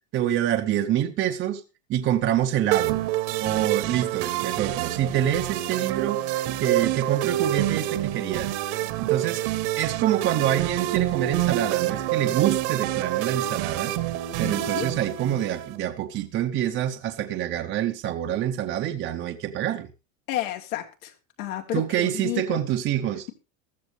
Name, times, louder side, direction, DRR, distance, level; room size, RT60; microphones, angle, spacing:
voice 1, 0.1-1.6 1.9-3.0 3.4-8.5 9.0-9.4 9.8-13.9 14.4-19.9 21.7-23.3, right 11 dB, 30° right, 0.9 m, -26 dB
sound 1, 2.7-15.8, right 14 dB, 55° right, 1.4 m, -27 dB
voice 2, 14.4-14.9 20.3-21.1 21.4-22.6, left 12 dB, 75° left, 3.2 m, -31 dB
15.0 x 13.0 x 3.4 m
supercardioid pair, 155°, 42 cm